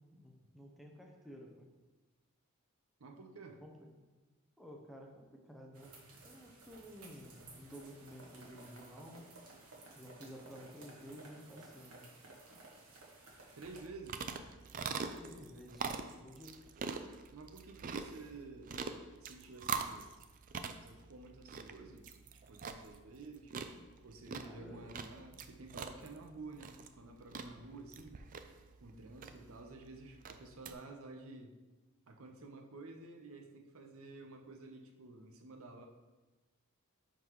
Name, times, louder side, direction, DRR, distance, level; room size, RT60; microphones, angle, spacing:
voice 1, 0.1-1.7 3.6-4.1 4.6-9.3 9.9-12.1 15.2-16.6 24.4-24.9 25.3-25.4, equal, ahead, 0 dB, 0.7 m, -53 dB
voice 2, 3.0-3.6 13.6-14.3 17.3-18.8 19.2-20.1 20.8-22.2 22.5-23.5 24.0-28.2 28.8-31.5 32.1-35.9, right 3 dB, 65° right, 3 dB, 0.7 m, -51 dB
Rain dropping on various textures, 5.7-13.8, right 2 dB, 85° right, 1.4 m, -56 dB
sound 1, 13.6-30.7, right 5 dB, 40° right, 0.4 m, -44 dB
10.0 x 3.9 x 3.1 m, 1.2 s
head